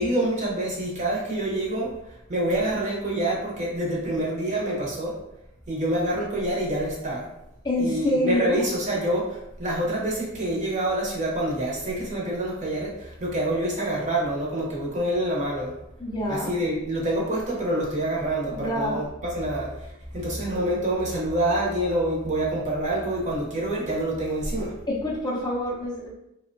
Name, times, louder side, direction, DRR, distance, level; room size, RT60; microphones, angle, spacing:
voice 1, 0.0-1.9 2.3-5.1 5.7-7.2 7.8-9.2 9.6-12.9 13.2-15.7 16.3-19.7 20.1-24.7, right 1 dB, 35° right, -3 dB, 0.7 m, -26 dB
voice 2, 7.6-8.6 16.0-16.5 18.5-19.1 24.9-26.1, left 1 dB, 20° left, -3 dB, 0.4 m, -26 dB
2.8 x 2.1 x 2.5 m, 0.83 s
head